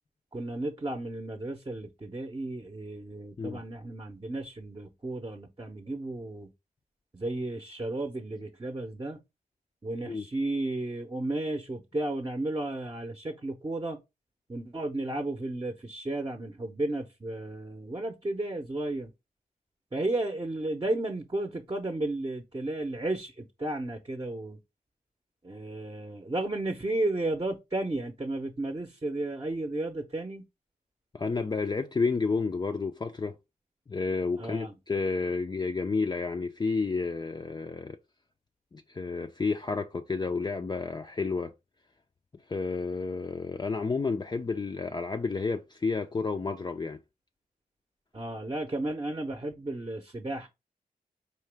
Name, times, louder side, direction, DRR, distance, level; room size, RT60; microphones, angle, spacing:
voice 1, 0.3-6.5 7.1-9.2 9.8-14.0 14.5-19.1 19.9-24.6 25.4-30.4 34.4-34.7 48.1-50.5, right 2 dB, 25° right, 0.7 m, -33 dB
voice 2, 31.1-33.4 33.9-38.0 38.7-41.5 42.5-47.0, left 4 dB, 30° left, 0.4 m, -31 dB
4.5 x 2.9 x 3.3 m
cardioid pair, 55°, 15 cm